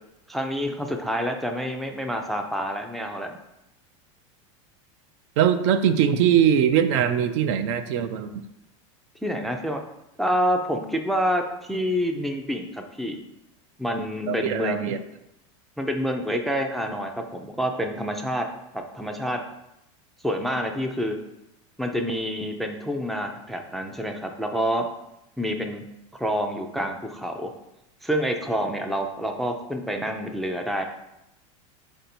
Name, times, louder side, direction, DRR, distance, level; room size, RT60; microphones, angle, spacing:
voice 1, 0.3-3.4 9.2-9.8 10.2-13.2 13.8-14.9 15.8-18.5 18.7-19.4 20.2-21.2 21.8-24.9 25.4-25.9 26.1-27.5 28.0-30.8, equal, ahead, 3 dB, 0.3 m, -27 dB
voice 2, 5.4-8.4 14.3-15.0, right 9 dB, 60° right, 10 dB, 0.4 m, -21 dB
4.5 x 2.7 x 4.2 m, 0.86 s
supercardioid pair, 125°, 17 cm